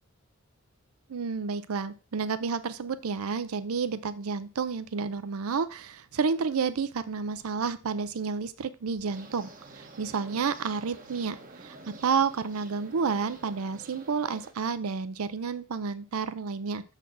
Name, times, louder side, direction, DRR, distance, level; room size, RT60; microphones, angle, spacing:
voice 1, 1.1-9.5 9.7-11.8 12.0-16.8, right 5 dB, 85° right, 14 dB, 0.5 m, -30 dB
sound 1, 9.1-14.5, right 3 dB, 40° right, 1.0 m, -49 dB
7.0 x 4.1 x 6.0 m, 0.34 s
head